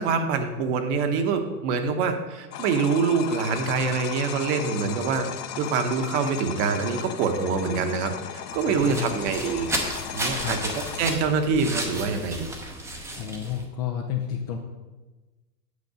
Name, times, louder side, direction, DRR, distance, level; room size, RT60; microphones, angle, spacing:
voice 1, 0.0-5.3 5.5-9.7 10.1-10.6 11.0-12.5, right 5 dB, 45° right, 7 dB, 1.1 m, -25 dB
sound 1, 2.5-11.2, left 10 dB, 70° left, 0.8 m, -36 dB
sound 2, 8.5-13.6, right 1 dB, 5° right, 0.7 m, -33 dB
voice 2, 8.7-9.2 10.3-10.6 13.2-14.6, left 9 dB, 25° left, 3 dB, 0.4 m, -31 dB
8.4 x 5.9 x 5.1 m, 1.2 s
hypercardioid pair, 125°, 49 cm